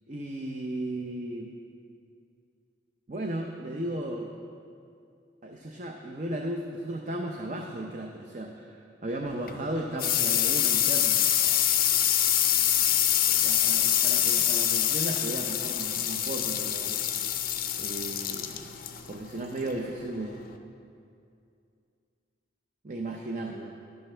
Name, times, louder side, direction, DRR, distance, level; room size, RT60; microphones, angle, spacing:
voice 1, 0.1-1.5 3.1-4.3 5.4-11.2 13.3-17.0 17.8-18.7 19.1-20.5 22.8-23.8, right 1 dB, 40° right, 1 dB, 0.6 m, -35 dB
sound 1, 9.3-20.6, left 11 dB, 50° left, 0.5 m, -26 dB
12.0 x 10.5 x 3.3 m, 2.4 s
head